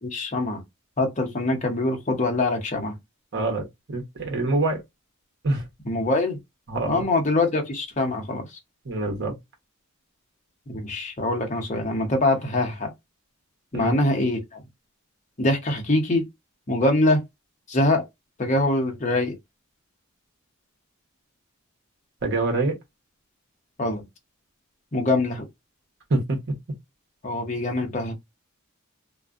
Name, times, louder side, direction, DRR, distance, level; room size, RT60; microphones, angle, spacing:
voice 1, 0.0-0.6 1.0-2.9 5.8-6.4 6.9-8.6 10.7-12.9 13.7-14.6 15.4-16.2 16.7-17.2 17.7-18.0 18.4-19.4 23.8-24.0 24.9-25.5 27.2-28.1, left 2 dB, 35° left, 0.7 m, -24 dB
voice 2, 3.3-4.8 5.4-5.6 6.7-7.0 8.9-9.3 13.7-13.9 22.2-22.8 26.1-26.5, right 2 dB, 55° right, 0.9 m, -25 dB
2.5 x 2.1 x 2.4 m
head